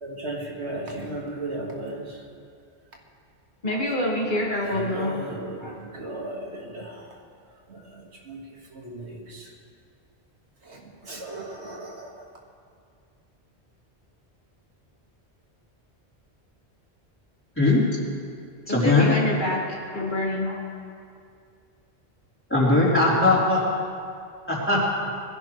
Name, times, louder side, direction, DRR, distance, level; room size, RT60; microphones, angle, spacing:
voice 1, 0.0-2.2 4.6-7.0 7.7-8.4 8.7-9.5 10.7-12.1, right 2 dB, 80° right, -1 dB, 2.1 m, -36 dB
voice 2, 3.6-5.2 5.6-5.8 18.7-20.7, left 1 dB, 45° left, -2 dB, 2.1 m, -27 dB
voice 3, 18.7-19.2 22.5-23.6 24.5-24.8, left 2 dB, 10° left, -7 dB, 3.8 m, -19 dB
21.5 x 15.5 x 3.2 m, 2.3 s
omnidirectional pair, 1.1 m